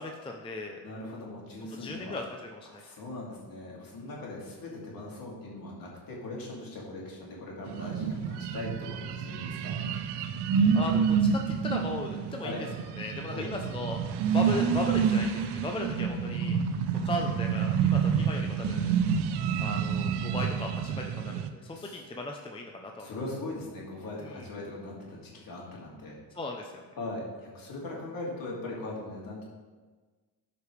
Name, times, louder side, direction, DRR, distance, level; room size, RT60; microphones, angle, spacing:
voice 1, 0.0-0.8 1.7-2.8 10.7-12.5 13.0-14.0 14.3-16.6 17.0-19.0 19.6-23.1 24.2-24.5 26.3-26.8, left 2 dB, 10° left, 2 dB, 0.6 m, -37 dB
voice 2, 0.8-2.2 2.7-9.8 12.4-12.6 13.3-13.5 21.7-22.0 23.0-26.2 27.0-29.4, left 2 dB, 50° left, -3 dB, 2.8 m, -40 dB
sound 1, 7.7-21.5, right 6 dB, 60° right, 0.7 m, -28 dB
12.5 x 5.1 x 3.3 m, 1.4 s
supercardioid pair, 95°, 45 cm